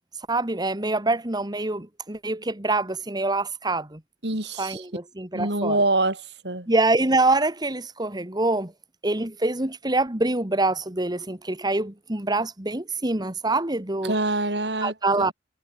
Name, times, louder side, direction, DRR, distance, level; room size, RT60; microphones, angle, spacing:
voice 1, 0.3-4.0 4.6-5.8 6.7-8.7 9.0-14.1 14.8-15.3, right 2 dB, 25° right, 2.0 m, -25 dB
voice 2, 4.2-4.8 5.3-6.7 14.0-14.9, right 2 dB, 70° right, 7.4 m, -25 dB
head